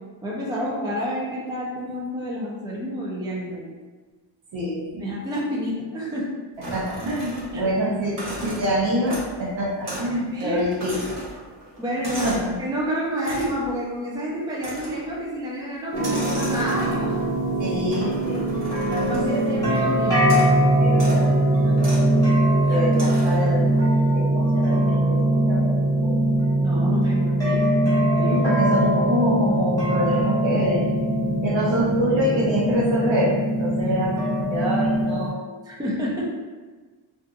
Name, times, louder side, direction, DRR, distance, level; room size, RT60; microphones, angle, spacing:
voice 1, 0.2-3.7 5.0-6.3 7.5-7.6 10.3-10.6 11.8-12.2 12.6-17.2 18.9-20.1 22.7-22.8 26.6-28.4 35.7-36.2, equal, 10° right, -5 dB, 0.4 m, -29 dB
voice 2, 4.5-5.1 6.6-11.1 12.0-12.5 17.6-19.5 20.8-22.1 22.7-23.7 24.1-25.2 25.5-26.1 28.2-35.3, equal, 65° right, -4 dB, 0.8 m, -26 dB
sound 1, 6.6-7.7 8.0-9.4 9.8-10.1 10.4-12.5 13.2-13.7 14.6-15.1 15.9-17.2 17.9-19.6 20.2-20.6 20.9-21.2 21.8-22.1 22.9-23.5, right 1 dB, 40° right, 1.1 m, -35 dB
sound 2, 15.9-35.3, right 1 dB, 5° left, 1.0 m, -21 dB
2.6 x 2.5 x 2.3 m, 1.3 s
wide cardioid pair, 110°, 48 cm